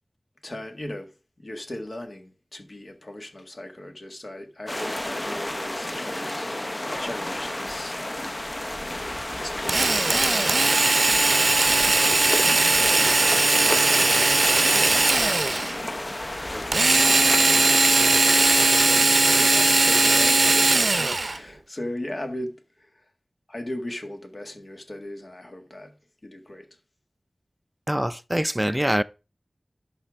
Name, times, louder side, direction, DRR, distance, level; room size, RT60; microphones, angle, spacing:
voice 1, 0.4-1.1 1.4-8.3 8.9-14.7 15.2-15.9 16.4-23.1 23.5-25.9 26.2-26.7, left 1 dB, 55° left, 1.7 m, -39 dB
sound 1, 4.7-18.7, left 1 dB, 30° left, 0.7 m, -31 dB
Drill, 9.7-15.8 16.7-21.4, right 2 dB, 60° right, 0.6 m, -19 dB
voice 2, 27.9-29.0, equal, 10° right, 0.4 m, -24 dB
11.5 x 5.7 x 3.5 m
wide cardioid pair, 55°, 0 cm